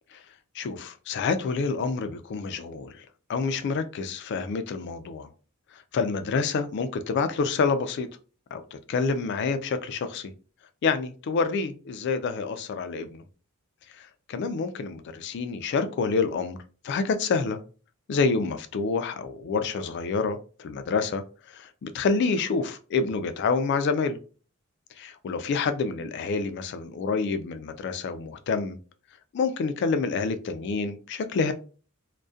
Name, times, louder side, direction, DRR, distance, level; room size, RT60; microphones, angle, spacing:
voice 1, 0.5-5.3 5.7-8.1 8.5-10.3 10.8-13.2 13.9-16.6 16.8-17.6 18.1-24.2 25.0-28.8 29.3-31.5, left 4 dB, 55° left, 0.3 m, -28 dB
2.3 x 2.1 x 2.5 m
head